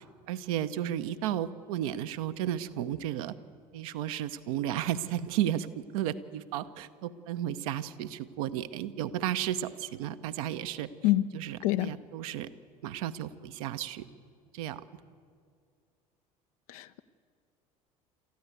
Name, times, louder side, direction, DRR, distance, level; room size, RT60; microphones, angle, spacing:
voice 1, 0.3-3.3 3.7-5.7 5.9-10.9 11.3-12.5 12.8-14.1 14.5-14.8, right 11 dB, 65° right, 10 dB, 0.9 m, -33 dB
voice 2, 11.6-12.0 16.7-17.0, left 15 dB, 65° left, 12 dB, 0.8 m, -26 dB
28.0 x 14.0 x 8.2 m, 2.2 s
figure-of-eight pair, 65°, 20 cm